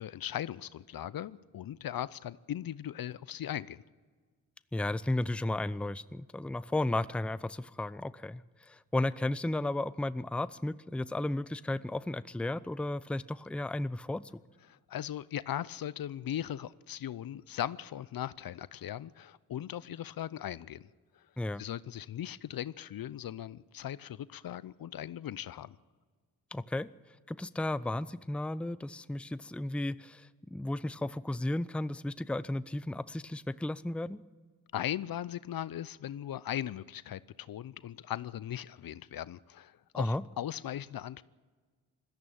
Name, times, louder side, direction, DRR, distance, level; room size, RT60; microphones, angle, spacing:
voice 1, 0.0-3.8 14.7-20.9 21.2-21.3 21.6-25.8 34.7-41.2, left 11 dB, 60° left, 0.7 m, -38 dB
voice 2, 4.7-8.4 8.7-14.3 21.4-21.6 26.5-26.9 27.3-34.2 39.9-40.2, left 1 dB, 5° left, 0.6 m, -34 dB
21.0 x 14.5 x 9.0 m
supercardioid pair, 45°, 41 cm